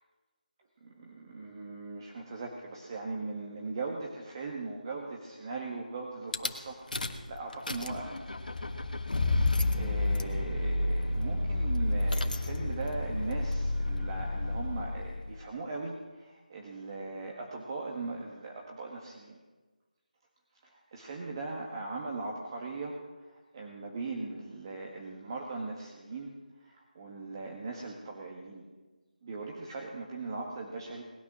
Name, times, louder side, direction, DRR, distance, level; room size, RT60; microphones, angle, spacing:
voice 1, 0.8-8.1 9.7-19.4 20.6-26.3 26.6-28.6 29.2-31.0, right 3 dB, 30° right, -1 dB, 1.7 m, -39 dB
Rattle / Car / Engine starting, 6.3-6.5 6.9-7.3 7.5-15.3, left 2 dB, 70° left, 1.5 m, -30 dB
19.5 x 9.6 x 6.3 m, 1.3 s
figure-of-eight pair, 165°, 5 cm